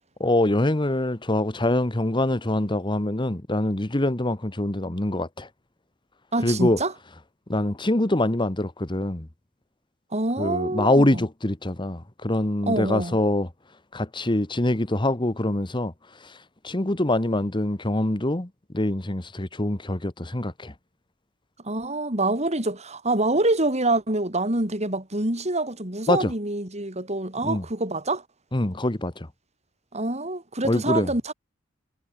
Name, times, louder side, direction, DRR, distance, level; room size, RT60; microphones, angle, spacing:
voice 1, 0.2-5.5 6.4-6.8 7.5-9.3 10.4-13.5 13.9-15.9 16.2-16.3 16.6-20.7 26.1-26.3 27.4-27.6 28.5-29.3 30.6-31.1, left 1 dB, 25° left, 1.4 m, -24 dB
voice 2, 6.3-6.9 10.1-11.2 12.7-13.2 21.6-28.2 29.9-31.3, right 2 dB, 35° right, 6.5 m, -26 dB
head